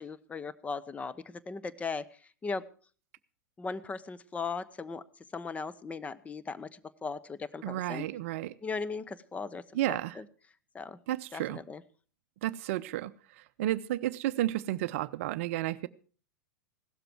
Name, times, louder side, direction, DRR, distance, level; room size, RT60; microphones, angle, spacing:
voice 1, 0.0-2.0 2.4-2.6 3.6-5.0 5.3-8.1 8.6-9.6 9.9-10.2 10.7-11.0 11.3-11.8, left 4 dB, 15° left, 14 dB, 0.9 m, -38 dB
voice 2, 7.6-8.5 9.7-10.2 11.1-11.6 12.4-13.1 13.4-15.9, right 14 dB, 45° right, 17 dB, 0.6 m, -32 dB
17.0 x 13.0 x 4.6 m, 0.41 s
figure-of-eight pair, 95°, 10 cm